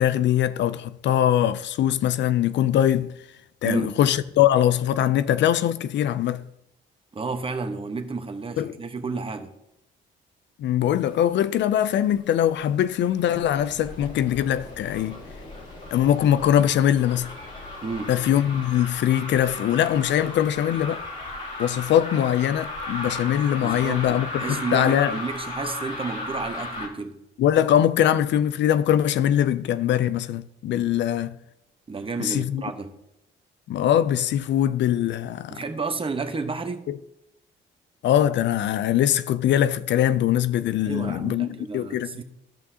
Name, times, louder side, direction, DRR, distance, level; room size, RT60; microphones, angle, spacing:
voice 1, 0.0-3.1 3.6-6.4 8.6-8.7 10.6-15.2 15.9-17.3 18.1-21.0 21.6-25.1 27.4-31.3 32.2-32.6 33.7-35.6 36.9-37.0 38.0-42.1, left 11 dB, 65° left, 0.4 m, -22 dB
voice 2, 3.6-4.0 7.1-9.5 17.8-18.1 23.6-27.2 31.9-33.0 35.5-36.9 40.8-42.2, right 4 dB, 25° right, 1.0 m, -31 dB
sound 1, 11.0-11.9 12.2-26.9, left 2 dB, 40° left, 2.7 m, -36 dB
14.5 x 5.5 x 2.8 m
cardioid pair, 90°, 20 cm